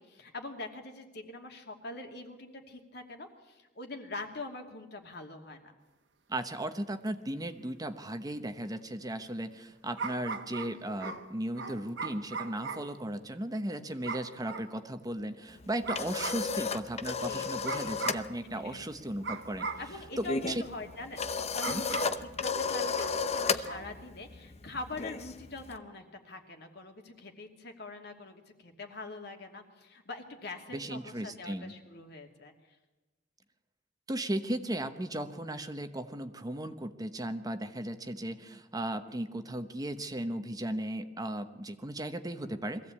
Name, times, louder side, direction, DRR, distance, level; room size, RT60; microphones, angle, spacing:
voice 1, 0.0-5.7 17.2-17.9 18.5-18.8 19.8-32.8, left 2 dB, 60° left, 3 dB, 2.6 m, -44 dB
voice 2, 6.3-19.7 20.2-20.6 21.7-21.8 30.7-31.7 34.1-42.9, right 1 dB, 20° right, 8 dB, 0.9 m, -36 dB
sound 1, 7.1-7.2 10.0-13.0 14.0-14.7 15.8-16.5 17.6-18.3 19.2-20.0 21.6-22.3 23.0-23.3 23.6-23.9, right 4 dB, 75° right, 1.5 m, -39 dB
sound 2, 15.6-18.3 18.5-18.8 19.1-25.8, left 5 dB, 35° left, 0.8 m, -34 dB
22.5 x 15.5 x 8.6 m, 1.1 s
head